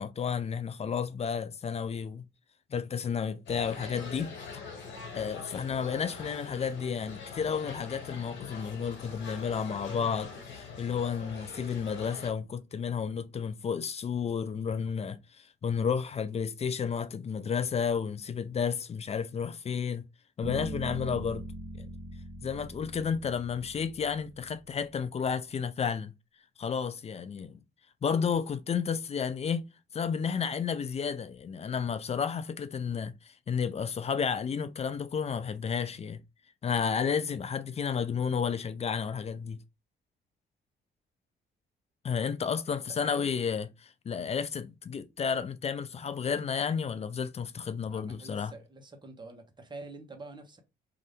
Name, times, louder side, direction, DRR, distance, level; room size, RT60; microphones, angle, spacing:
voice 1, 0.0-2.3 2.7-4.3 5.1-20.1 20.4-21.4 21.8-21.9 22.4-26.1 26.6-27.6 28.0-29.6 29.9-36.2 36.6-39.6 42.0-48.5, left 6 dB, 30° left, 0.4 m, -32 dB
sound 1, 3.5-12.3, left 5 dB, 65° left, 1.3 m, -43 dB
sound 2, 20.4-24.5, right 2 dB, 60° right, 1.3 m, -41 dB
voice 2, 47.9-50.6, right 2 dB, 20° right, 0.9 m, -46 dB
2.7 x 2.5 x 3.3 m
cardioid pair, 90°, 20 cm